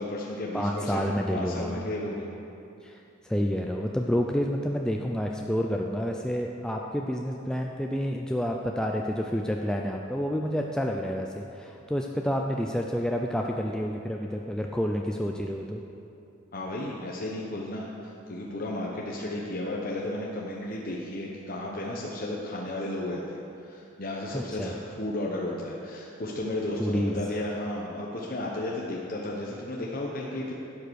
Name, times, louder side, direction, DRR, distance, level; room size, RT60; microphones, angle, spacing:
voice 1, 0.0-2.3 16.5-30.5, left 1 dB, 45° left, -3 dB, 1.0 m, -33 dB
voice 2, 0.5-1.9 2.8-3.0 3.2-15.8 24.3-24.7 26.8-27.2, equal, 5° left, 1 dB, 0.4 m, -29 dB
11.5 x 7.7 x 6.4 m, 2.7 s
head